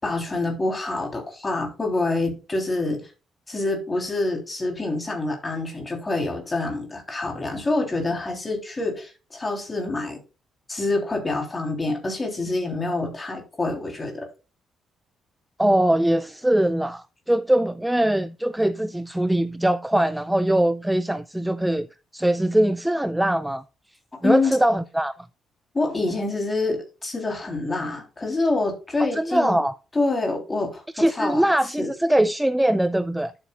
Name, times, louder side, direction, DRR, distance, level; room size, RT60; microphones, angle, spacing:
voice 1, 0.0-3.1 3.5-10.2 10.7-14.3 24.1-24.6 25.7-29.6 29.9-30.8 31.1-31.5 31.8-31.9, left 2 dB, 20° left, 3.5 m, -26 dB
voice 2, 15.6-21.9 22.1-23.6 24.2-25.1 29.1-29.7 31.0-33.3, right 1 dB, 5° right, 0.3 m, -22 dB
11.5 x 8.2 x 2.4 m
cardioid pair, 140°, 0 cm